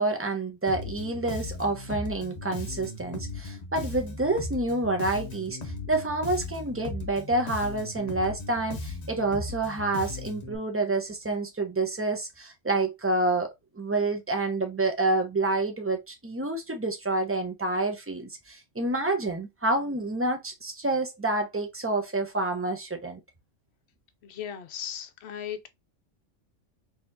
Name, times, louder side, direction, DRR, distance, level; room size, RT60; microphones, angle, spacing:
voice 1, 0.0-23.2, right 2 dB, 15° right, 0.7 m, -28 dB
Bass guitar, 0.7-10.6, left 3 dB, 40° left, 0.7 m, -37 dB
voice 2, 24.2-25.7, left 9 dB, 60° left, 0.9 m, -37 dB
4.1 x 3.0 x 2.7 m
omnidirectional pair, 1.3 m